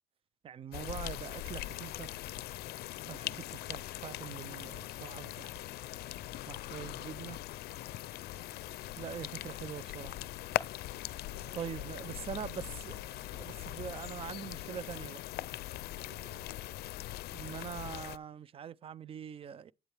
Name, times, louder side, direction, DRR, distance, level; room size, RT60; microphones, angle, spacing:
voice 1, 0.4-2.1 3.0-5.6 6.5-7.4 9.0-10.3 11.6-13.0 13.4-15.2 17.3-19.7, right 8 dB, 35° right, 0.4 m, -43 dB
sound 1, 0.7-18.2, left 15 dB, 70° left, 0.5 m, -41 dB
voice 2, 6.6-7.2 8.0-8.5 11.0-12.4 15.9-16.5, right 3 dB, 70° right, 5.8 m, -59 dB
11.0 x 8.9 x 3.3 m
cardioid pair, 110°, 17 cm